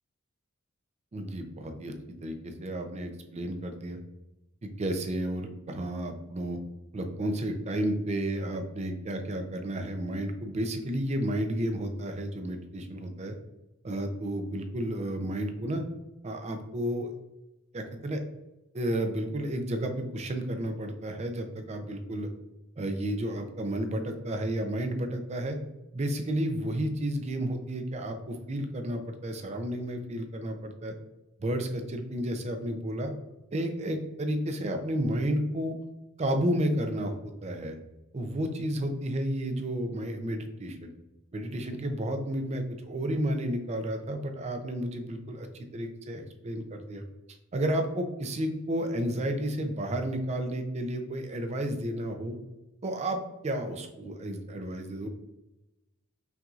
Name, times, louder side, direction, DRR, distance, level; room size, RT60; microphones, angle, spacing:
voice 1, 1.1-1.9 2.2-4.0 4.6-6.6 6.9-13.3 13.8-15.8 16.2-17.1 17.7-18.2 18.7-22.3 22.8-25.6 25.9-30.9 31.4-33.1 33.5-35.8 36.2-37.8 38.1-40.9 41.3-45.5 45.7-47.0 47.5-52.4 52.8-55.1, right 1 dB, 30° right, 6 dB, 0.4 m, -32 dB
5.7 x 2.6 x 2.4 m, 0.98 s
head